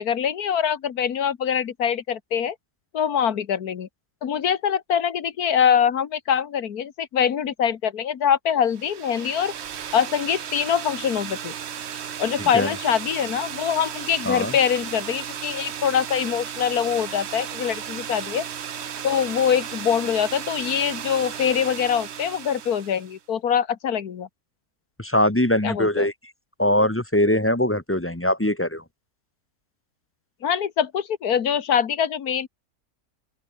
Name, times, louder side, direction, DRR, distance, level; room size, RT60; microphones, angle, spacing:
voice 1, 0.0-2.6 2.9-3.9 4.2-9.5 9.9-11.5 12.2-18.5 19.0-24.3 25.6-26.1 30.4-32.5, left 8 dB, 85° left, 1.8 m, -24 dB
sound 1, 8.7-23.2, right 8 dB, 50° right, 1.1 m, -35 dB
voice 2, 12.4-12.7 14.2-14.5 25.0-26.1 26.6-28.8, left 1 dB, 10° left, 1.3 m, -22 dB
omnidirectional pair, 1.5 m